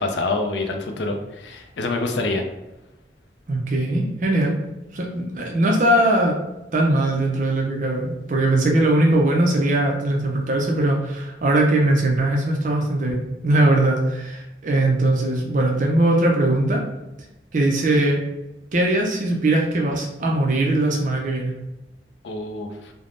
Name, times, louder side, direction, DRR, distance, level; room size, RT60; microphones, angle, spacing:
voice 1, 0.0-2.4 22.2-22.9, left 2 dB, 85° left, 4 dB, 0.4 m, -26 dB
voice 2, 3.5-4.6 4.9-6.4 6.7-16.8 17.5-18.2 18.7-21.5, right 1 dB, 45° right, -1 dB, 0.4 m, -20 dB
3.3 x 2.0 x 2.5 m, 0.94 s
head